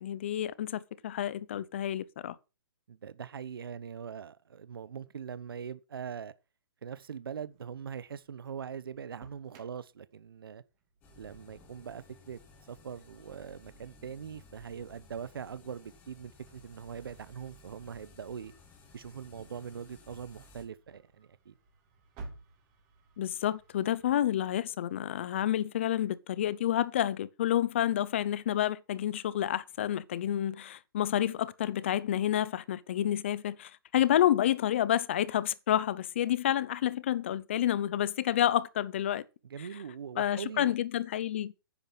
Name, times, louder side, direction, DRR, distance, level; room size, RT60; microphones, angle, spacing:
voice 1, 0.0-2.4 23.2-39.2 40.2-41.5, left 11 dB, 30° left, 0.7 m, -29 dB
voice 2, 2.9-6.3 6.8-10.6 11.2-12.4 12.7-18.5 18.9-21.5 39.5-40.7, right 7 dB, 70° right, 1.0 m, -42 dB
Engine starting, 7.3-24.3, right 3 dB, 20° right, 2.8 m, -57 dB
sound 1, 11.0-20.6, left 2 dB, 10° left, 1.8 m, -57 dB
10.0 x 9.2 x 6.2 m
hypercardioid pair, 175°, 12 cm